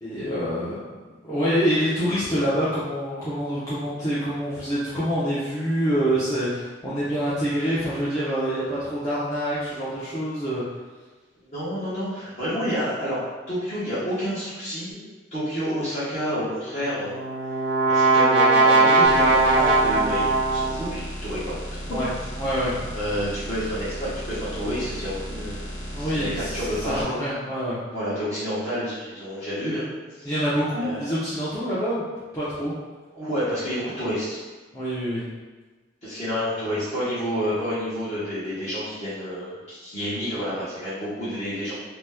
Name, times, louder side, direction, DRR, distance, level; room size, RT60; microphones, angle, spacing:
voice 1, 0.0-10.6 21.9-22.1 22.4-22.8 25.9-27.8 30.2-32.1 32.3-32.7 34.7-35.2, equal, 15° left, -13 dB, 0.7 m, -26 dB
voice 2, 11.4-17.1 17.9-20.2 20.5-21.6 22.9-27.1 27.9-29.9 30.2-30.3 30.8-31.2 33.1-34.4 36.0-41.7, equal, 35° left, -13 dB, 1.0 m, -29 dB
Brass instrument, 16.8-21.0, right 3 dB, 65° right, 0.4 m, -19 dB
sound 1, 19.0-27.0, equal, 85° left, 1.0 m, -35 dB
2.9 x 2.2 x 3.4 m, 1.3 s
head